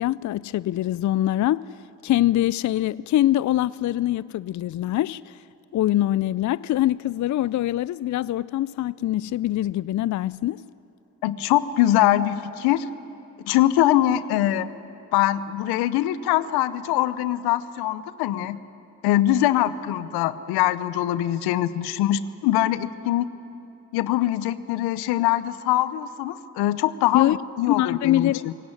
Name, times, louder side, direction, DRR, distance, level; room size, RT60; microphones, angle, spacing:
voice 1, 0.0-1.7 2.0-5.4 5.7-10.6 27.1-27.4 27.7-28.5, left 14 dB, 50° left, 0.5 m, -23 dB
voice 2, 11.2-12.8 13.5-14.7 15.1-18.6 19.0-23.3 23.9-28.5, left 13 dB, 85° left, 0.8 m, -23 dB
22.5 x 17.5 x 9.9 m
hypercardioid pair, 40°, 37 cm